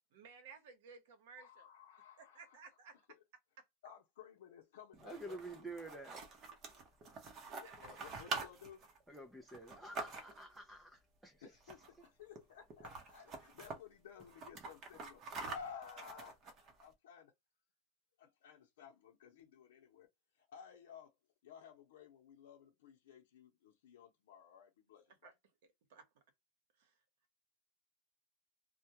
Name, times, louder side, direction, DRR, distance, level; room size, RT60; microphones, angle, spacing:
voice 1, 0.1-1.7 2.2-3.0 3.6-3.7 7.5-7.8 13.4-13.5 25.2-25.3 25.9-26.1 26.8-26.9, right 5 dB, 65° right, 1.0 m, -57 dB
voice 2, 1.4-2.6 3.8-5.7 7.6-8.9 11.4-16.5 16.8-17.3 18.2-21.1 21.4-25.3, left 7 dB, 85° left, 0.6 m, -55 dB
sound 1, 4.9-10.6 11.6-12.1 12.3-12.4 12.7-13.8 14.2-16.8, right 4 dB, 25° right, 0.8 m, -46 dB
voice 3, 5.0-6.3 9.1-12.0, right 2 dB, ahead, 0.4 m, -50 dB
2.2 x 2.2 x 2.7 m
supercardioid pair, 165°, 0 cm